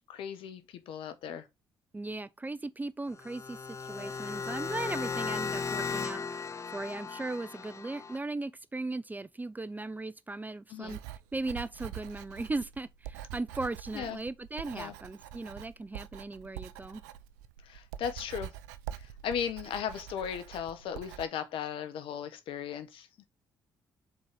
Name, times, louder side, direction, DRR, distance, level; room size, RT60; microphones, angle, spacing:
voice 1, 0.1-1.5 10.7-11.0 13.9-14.2 14.7-14.9 17.7-18.5 19.2-23.1, left 8 dB, 65° left, 1.0 m, -36 dB
voice 2, 1.9-3.6 3.8-11.0 11.3-17.0, right 2 dB, 20° right, 0.5 m, -37 dB
sound 1, 3.1-8.2, left 5 dB, 30° left, 0.7 m, -36 dB
Writing, 10.8-21.3, right 12 dB, 85° right, 0.4 m, -45 dB
7.0 x 4.0 x 3.5 m
hypercardioid pair, 45°, 10 cm